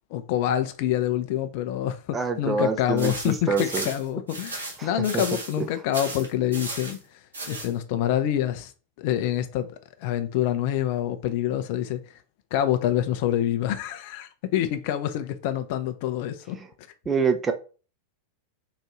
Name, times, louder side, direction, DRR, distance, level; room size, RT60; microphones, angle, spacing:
voice 1, 0.1-7.0 7.5-8.7 9.0-12.0 12.5-16.6, left 11 dB, 45° left, 0.5 m, -26 dB
voice 2, 2.1-3.9 4.8-5.2 16.6-16.7 17.1-17.5, right 5 dB, 15° right, 0.6 m, -26 dB
sound 1, 3.0-5.6 5.9-7.0 7.3-7.7, right 2 dB, 70° right, 1.4 m, -35 dB
3.9 x 2.6 x 4.5 m
figure-of-eight pair, 90°, 0 cm